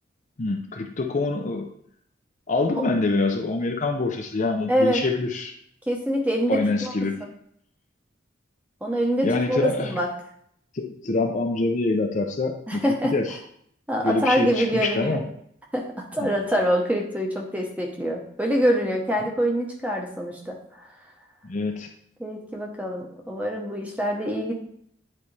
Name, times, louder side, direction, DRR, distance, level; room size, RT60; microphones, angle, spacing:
voice 1, 0.4-1.7 2.5-5.5 6.5-7.2 9.2-9.9 10.7-13.4 14.0-15.2 16.2-16.3 21.4-21.9, left 3 dB, 40° left, 3 dB, 0.5 m, -25 dB
voice 2, 4.7-5.0 5.9-6.9 8.8-10.1 12.7-13.1 13.9-15.2 15.7-20.9 22.2-24.5, equal, 5° right, 0 dB, 0.9 m, -25 dB
9.4 x 4.1 x 3.3 m, 0.68 s
head